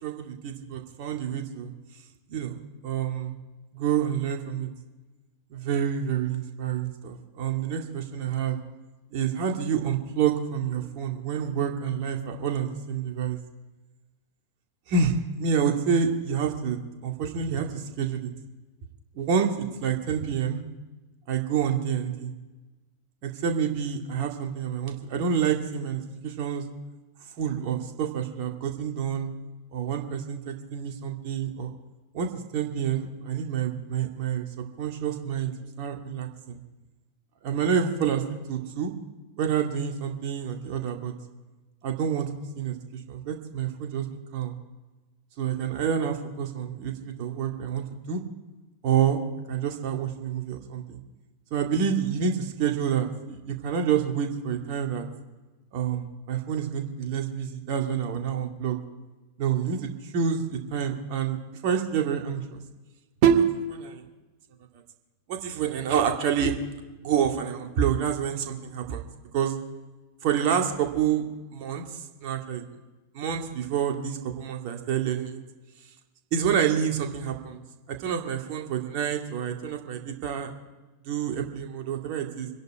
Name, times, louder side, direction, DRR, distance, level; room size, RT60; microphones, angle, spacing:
voice 1, 0.0-1.7 2.3-2.6 2.8-3.4 3.7-4.7 5.5-8.6 9.1-13.4 14.9-18.3 19.1-20.6 21.3-22.3 23.2-26.6 27.4-29.3 29.7-31.7 32.1-34.5 34.8-36.6 37.4-38.9 39.4-41.1 41.8-42.3 42.6-44.5 45.4-48.2 48.8-49.2 49.5-51.0 51.5-55.0 55.7-58.8 59.4-62.6 63.2-64.0 65.3-66.5 67.0-69.0 69.3-69.6 70.2-71.3 71.5-72.6 73.1-75.4 76.3-77.6 77.9-80.5 81.0-82.5, right 7 dB, 45° right, 3 dB, 2.2 m, -28 dB
26.5 x 11.0 x 4.8 m, 1.2 s
figure-of-eight pair, 90°, 0 cm